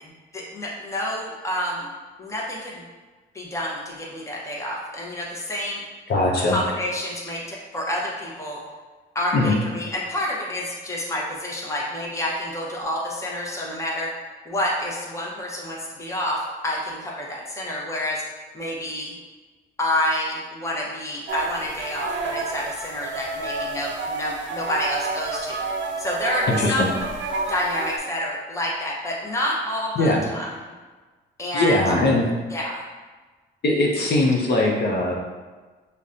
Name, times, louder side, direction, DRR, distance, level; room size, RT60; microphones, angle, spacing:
voice 1, 0.0-1.9 2.2-2.8 3.3-5.8 6.4-8.6 9.1-14.2 14.5-18.2 18.5-19.1 19.8-25.6 26.0-26.9 27.5-30.5 31.4-31.7 32.5-32.8, left 1 dB, 15° left, -3 dB, 0.7 m, -28 dB
voice 2, 6.1-6.6 9.3-9.5 26.5-26.9 30.0-30.3 31.5-32.3 33.6-35.1, left 2 dB, 55° left, -2 dB, 0.6 m, -20 dB
sound 1, 21.3-28.0, right 3 dB, 70° right, 0.5 m, -30 dB
5.2 x 2.2 x 2.5 m, 1.3 s
cardioid pair, 90°, 20 cm